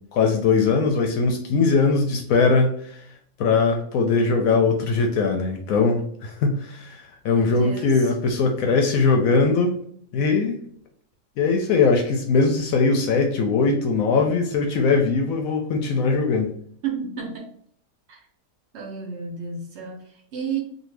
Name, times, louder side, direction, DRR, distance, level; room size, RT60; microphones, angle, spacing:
voice 1, 0.1-3.0 3.4-9.8 10.1-10.6 11.4-16.5, left 4 dB, 70° left, 3 dB, 0.9 m, -20 dB
voice 2, 7.3-8.1 16.8-17.5 18.1-18.3 18.7-20.6, right 6 dB, 55° right, 1 dB, 0.8 m, -32 dB
2.7 x 2.5 x 3.1 m, 0.63 s
omnidirectional pair, 1.7 m